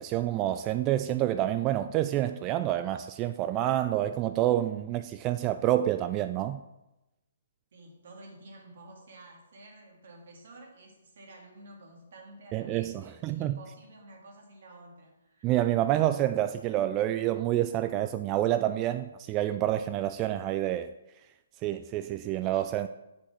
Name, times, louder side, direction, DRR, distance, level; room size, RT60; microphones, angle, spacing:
voice 1, 0.0-6.6 12.5-13.6 15.4-20.9 21.6-22.9, right 13 dB, 25° right, 10 dB, 0.3 m, -28 dB
voice 2, 7.7-15.5, right 2 dB, 55° right, 1 dB, 2.3 m, -51 dB
7.8 x 5.5 x 6.0 m, 0.95 s
figure-of-eight pair, 130°, 0 cm